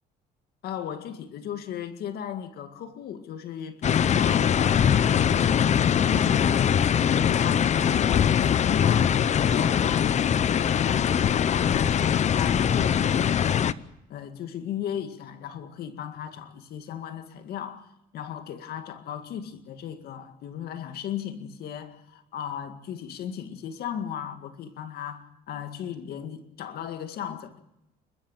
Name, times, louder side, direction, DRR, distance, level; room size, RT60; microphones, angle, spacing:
voice 1, 0.6-6.7 7.1-10.5 10.9-13.8 14.1-27.6, left 9 dB, 70° left, 2.1 m, -36 dB
sound 1, 3.8-13.7, left 8 dB, 45° left, 0.8 m, -22 dB
29.5 x 13.5 x 8.9 m
cardioid pair, 110°, 17 cm